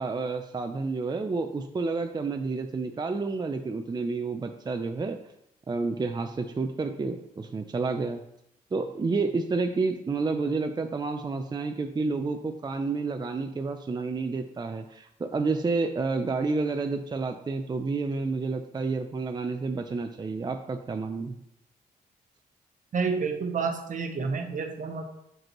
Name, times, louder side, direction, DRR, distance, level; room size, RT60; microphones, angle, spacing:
voice 1, 0.0-5.2 5.7-8.2 8.7-21.4, right 3 dB, 30° right, 6 dB, 0.5 m, -30 dB
voice 2, 22.9-25.0, right 5 dB, 60° right, 5 dB, 0.9 m, -29 dB
6.1 x 5.2 x 3.0 m, 0.79 s
cardioid pair, 65°, 15 cm